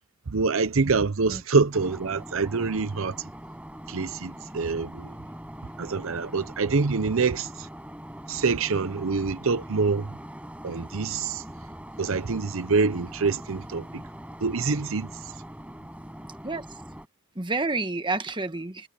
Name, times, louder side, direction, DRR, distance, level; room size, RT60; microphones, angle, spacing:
voice 1, 0.3-3.1 3.9-5.1 5.8-7.5 8.3-10.1 10.6-11.4 12.0-13.8 14.4-15.1, right 4 dB, 65° right, 0.7 m, -25 dB
sound 1, 1.7-17.1, equal, 5° right, 6.3 m, -42 dB
voice 2, 16.4-16.8 17.3-18.9, right 3 dB, 20° right, 1.4 m, -29 dB
head